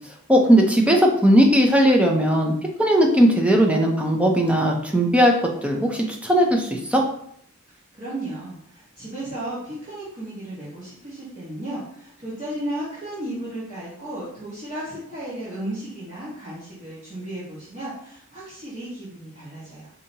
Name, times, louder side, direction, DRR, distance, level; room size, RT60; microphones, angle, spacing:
voice 1, 0.3-2.5 2.8-7.0, equal, 5° right, 0 dB, 0.5 m, -18 dB
voice 2, 7.9-19.9, right 1 dB, 35° right, -11 dB, 1.3 m, -34 dB
5.0 x 2.8 x 2.7 m, 0.69 s
head